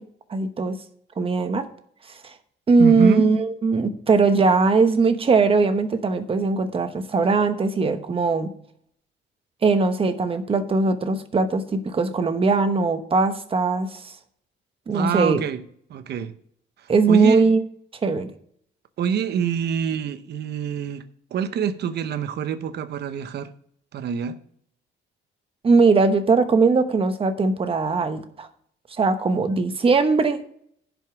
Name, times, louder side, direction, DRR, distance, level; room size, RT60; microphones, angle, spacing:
voice 1, 0.3-0.8 1.2-1.7 2.1-2.3 2.7-8.5 9.6-14.1 14.9-15.4 16.9-17.6 18.0-18.3 25.6-28.5 29.0-30.4, right 4 dB, 30° right, 1.0 m, -20 dB
voice 2, 2.8-3.3 14.9-15.6 15.9-16.3 16.8-17.5 19.0-21.1 21.3-23.5 23.9-24.4, right 7 dB, 55° right, 0.8 m, -26 dB
11.0 x 5.3 x 5.9 m
cardioid pair, 145°, 20 cm